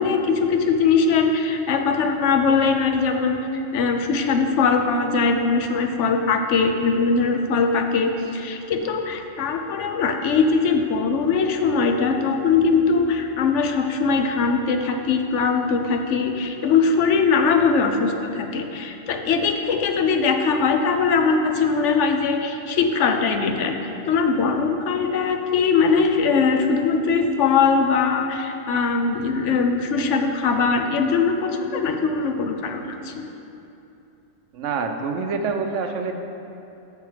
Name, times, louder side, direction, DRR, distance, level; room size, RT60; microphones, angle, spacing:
voice 1, 0.0-3.4 3.7-23.8 24.1-33.2, left 5 dB, 75° left, 5 dB, 1.0 m, -21 dB
voice 2, 34.5-36.1, right 5 dB, 90° right, 6 dB, 1.0 m, -26 dB
6.7 x 6.5 x 5.0 m, 2.8 s
omnidirectional pair, 1.2 m